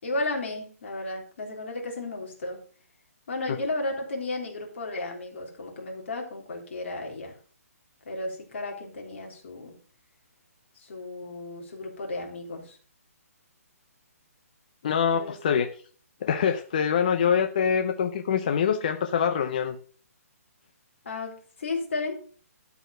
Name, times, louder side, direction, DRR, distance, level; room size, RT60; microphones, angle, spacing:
voice 1, 0.0-2.6 3.3-7.4 8.1-9.7 10.8-12.8 15.1-15.6 21.0-22.2, left 2 dB, 50° left, 3.5 m, -34 dB
voice 2, 14.8-15.7 16.2-19.8, left 7 dB, 30° left, 0.6 m, -24 dB
12.5 x 4.6 x 6.6 m
hypercardioid pair, 175°, 8 cm